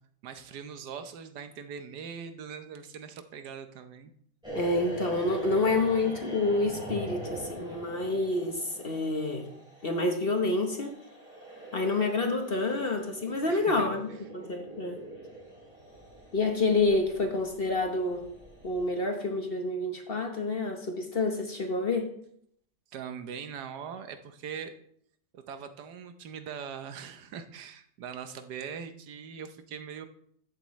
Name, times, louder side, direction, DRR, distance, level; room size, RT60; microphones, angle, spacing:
voice 1, 0.2-4.1 13.5-14.0 22.9-24.7 25.3-30.1, right 7 dB, 75° right, 9 dB, 1.4 m, -41 dB
sound 1, 4.4-18.8, right 1 dB, 5° right, 4.5 m, -43 dB
voice 2, 4.5-9.5 9.8-11.0 11.7-15.0 16.3-18.3 18.6-22.1, left 2 dB, 40° left, 4 dB, 1.0 m, -28 dB
14.0 x 7.6 x 3.1 m, 0.66 s
omnidirectional pair, 1.8 m